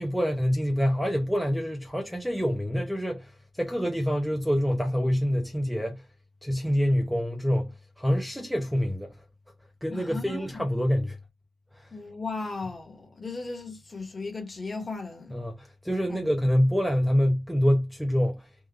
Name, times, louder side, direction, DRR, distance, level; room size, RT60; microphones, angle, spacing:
voice 1, 0.0-6.0 6.4-9.2 9.8-11.2 11.7-11.9 15.3-18.5, equal, ahead, 0.5 m, -26 dB
voice 2, 9.9-10.6 11.9-15.4 16.1-16.3, left 3 dB, 25° left, 1.0 m, -36 dB
3.6 x 2.1 x 3.2 m
wide cardioid pair, 165°, 0 cm